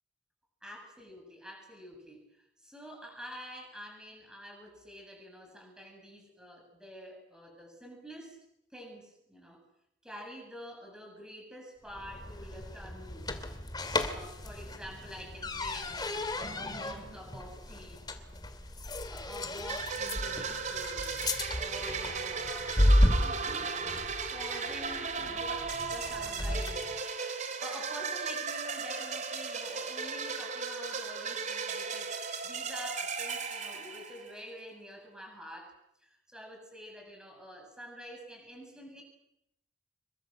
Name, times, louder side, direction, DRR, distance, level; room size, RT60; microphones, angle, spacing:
voice 1, 0.6-2.2 2.6-8.4 8.7-9.6 10.0-13.3 14.1-18.1 19.1-21.1 21.6-26.9 27.6-35.8 36.0-39.0, equal, 5° right, 2 dB, 7.7 m, -47 dB
sound 1, 11.9-27.0, left 1 dB, 20° left, 2.5 m, -33 dB
sound 2, 19.7-34.5, right 5 dB, 40° right, 3.0 m, -36 dB
27.0 x 23.5 x 7.7 m, 0.80 s
head